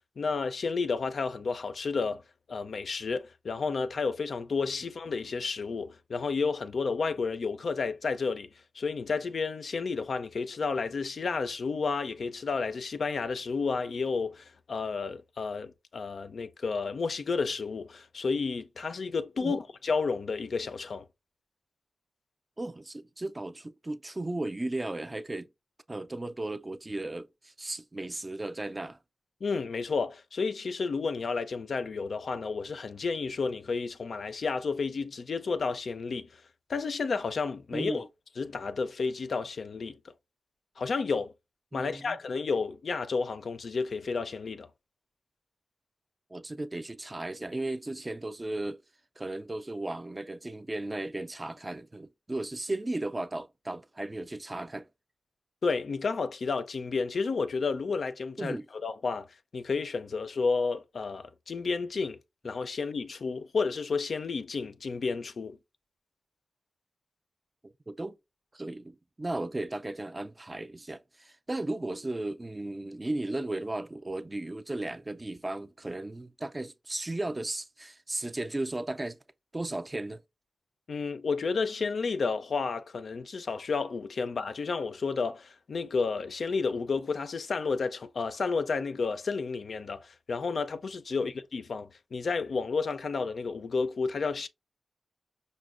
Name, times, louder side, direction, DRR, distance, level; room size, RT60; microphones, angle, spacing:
voice 1, 0.2-2.2 2.5-8.5 8.7-21.1 29.4-36.4 36.7-38.1 38.4-40.0 40.8-41.3 41.7-44.7 55.6-59.3 59.5-62.2 62.4-65.6 80.9-94.5, left 4 dB, 75° left, 0.3 m, -31 dB
voice 2, 22.6-25.5 25.9-29.0 37.7-38.1 41.7-42.2 46.3-48.8 49.2-54.9 58.4-58.7 67.6-68.2 68.5-79.2 79.5-80.2 91.2-91.3, right 2 dB, 30° right, 0.3 m, -35 dB
5.0 x 2.1 x 2.4 m
cardioid pair, 55°, 0 cm